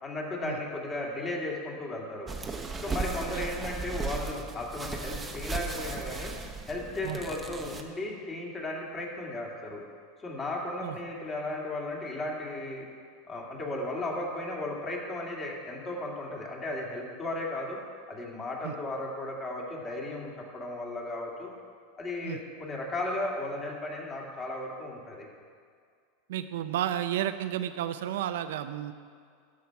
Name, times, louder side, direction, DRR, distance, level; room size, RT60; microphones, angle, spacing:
voice 1, 0.0-2.3 2.8-6.4 6.7-9.8 10.2-12.9 13.3-17.8 18.1-21.5 22.0-25.3, left 2 dB, 25° left, -2 dB, 2.2 m, -35 dB
sound 1, 2.3-7.8, right 4 dB, 15° right, 0.8 m, -36 dB
voice 2, 26.3-28.9, right 11 dB, 80° right, 10 dB, 0.5 m, -32 dB
12.5 x 7.6 x 4.7 m, 2.1 s
supercardioid pair, 130°, 0 cm